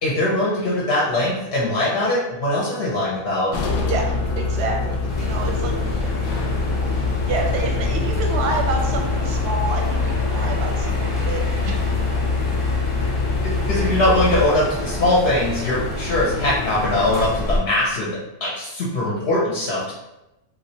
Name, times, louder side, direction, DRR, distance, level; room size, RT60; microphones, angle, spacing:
voice 1, 0.0-3.5 13.7-18.1 18.4-19.9, left 1 dB, 55° left, -5 dB, 0.8 m, -21 dB
sound 1, 3.5-14.5, left 4 dB, 80° left, 1.0 m, -24 dB
voice 2, 3.9-6.2 6.9-11.9 12.2-12.3 13.4-13.5, right 3 dB, 60° right, 1 dB, 0.7 m, -29 dB
sound 2, 5.1-17.6, left 2 dB, 25° left, 0.8 m, -28 dB
3.1 x 2.7 x 2.7 m, 0.95 s
omnidirectional pair, 1.5 m